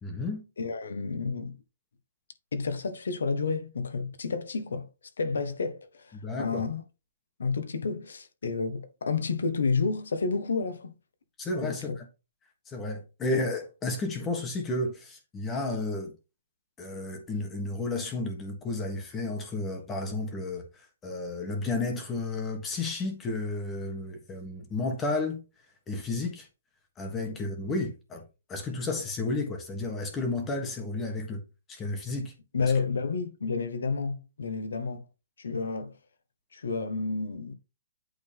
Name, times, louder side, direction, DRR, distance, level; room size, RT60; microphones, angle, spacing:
voice 1, 0.0-0.4 6.2-6.6 11.4-12.0 12.7-16.1 16.8-25.4 25.9-26.5 27.0-28.2 28.5-31.4 31.7-32.3 32.6-32.7, left 2 dB, 15° left, 1.4 m, -32 dB
voice 2, 0.6-1.6 2.5-4.9 5.2-6.8 7.4-10.9 11.6-12.0 27.2-27.4 32.5-35.0 35.4-35.9 36.5-37.5, left 4 dB, 85° left, 1.3 m, -30 dB
8.7 x 3.9 x 3.5 m
hypercardioid pair, 165°, 0 cm